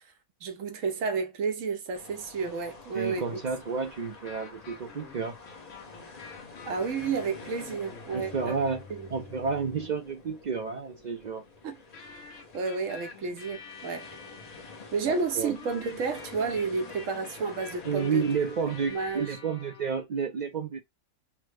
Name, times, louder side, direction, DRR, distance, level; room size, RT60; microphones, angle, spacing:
voice 1, 0.4-3.4 6.6-8.6 8.9-9.1 11.6-11.7 12.5-14.1 14.9-18.3 18.9-19.3, right 5 dB, 85° right, 1.2 m, -31 dB
sound 1, 1.9-19.3, left 4 dB, 35° left, 0.8 m, -48 dB
voice 2, 2.9-5.3 8.1-8.8 9.1-11.4 15.1-15.6 17.8-20.8, right 5 dB, 60° right, 0.4 m, -31 dB
sound 2, 4.1-10.0 11.9-14.9 15.6-20.0, left 5 dB, 75° left, 1.2 m, -48 dB
3.5 x 2.1 x 3.3 m
omnidirectional pair, 1.3 m